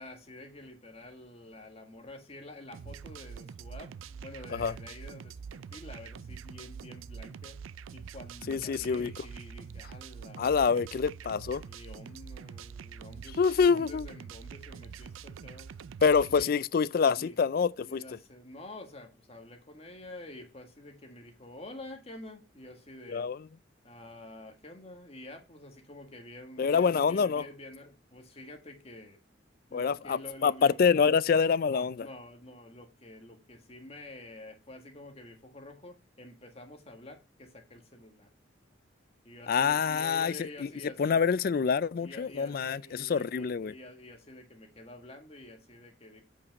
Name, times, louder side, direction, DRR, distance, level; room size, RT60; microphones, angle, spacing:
voice 1, 0.0-7.6 7.9-10.8 11.6-15.8 16.3-16.5 17.1-17.3 17.8-23.3 23.8-29.2 29.7-30.8 31.7-38.3 39.2-41.2 42.0-46.2, left 1 dB, 30° left, 1.6 m, -48 dB
sound 1, 2.7-16.4, right 6 dB, 90° right, 0.4 m, -45 dB
voice 2, 8.5-9.1 10.4-11.6 13.4-14.1 16.0-18.0 23.1-23.4 26.6-27.4 29.7-32.1 39.5-40.7 41.0-43.7, left 6 dB, 50° left, 0.3 m, -26 dB
8.5 x 5.3 x 5.2 m
head